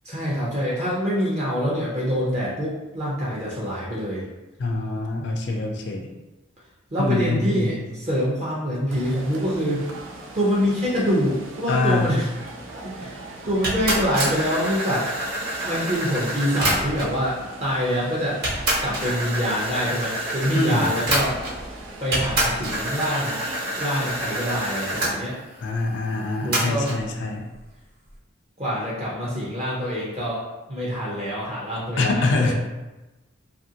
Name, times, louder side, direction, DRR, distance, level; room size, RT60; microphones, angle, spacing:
voice 1, 0.0-4.3 6.9-9.9 10.3-12.3 12.8-15.1 15.6-18.5 18.8-21.4 22.0-23.4 23.8-25.4 26.4-26.9 28.6-30.4 30.7-32.5, equal, 35° right, -6 dB, 0.6 m, -25 dB
voice 2, 4.6-6.1 7.0-7.9 11.7-12.2 20.5-20.9 25.6-27.5 32.0-32.5, left 2 dB, 60° left, 3 dB, 0.4 m, -24 dB
sound 1, 8.9-25.1, right 2 dB, 75° right, 0.5 m, -40 dB
sound 2, 13.6-17.2 17.9-18.0 18.4-21.7 22.1-25.1 26.5-27.0, right 1 dB, 50° right, 1.1 m, -27 dB
2.8 x 2.5 x 2.7 m, 1.1 s
head